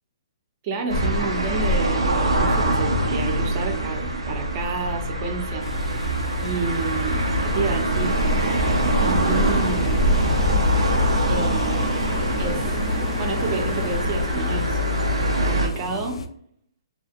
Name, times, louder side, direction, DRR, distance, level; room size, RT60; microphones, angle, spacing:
voice 1, 0.6-5.7 6.4-8.2 9.0-10.0 11.3-12.1 12.4-14.8 15.4-16.2, right 4 dB, 40° right, 3 dB, 0.6 m, -30 dB
sound 1, 0.9-15.7, equal, 85° right, 0.6 m, -23 dB
sound 2, 5.6-16.3, left 2 dB, 80° left, 0.3 m, -34 dB
sound 3, 8.0-14.6, equal, 20° left, 0.6 m, -34 dB
2.7 x 2.1 x 2.5 m, 0.67 s
hypercardioid pair, 135°, 3 cm